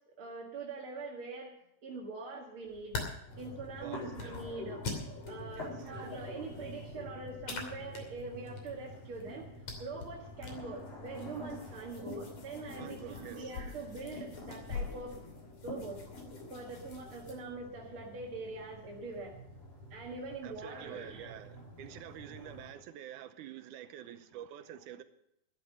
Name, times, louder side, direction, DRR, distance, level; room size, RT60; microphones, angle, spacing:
voice 1, 0.2-1.5 1.8-3.1 3.4-4.8 5.3-9.5 9.8-15.1 15.6-16.1 16.5-19.3 19.9-21.4, right 3 dB, 45° right, 2.1 m, -43 dB
sound 1, 2.7-17.3, left 4 dB, 50° left, 3.9 m, -46 dB
sound 2, 3.3-22.7, left 1 dB, 65° left, 6.5 m, -47 dB
voice 2, 5.6-5.9 12.8-13.6 20.4-25.0, right 10 dB, 70° right, 2.0 m, -47 dB
13.0 x 12.5 x 5.4 m
omnidirectional pair, 4.2 m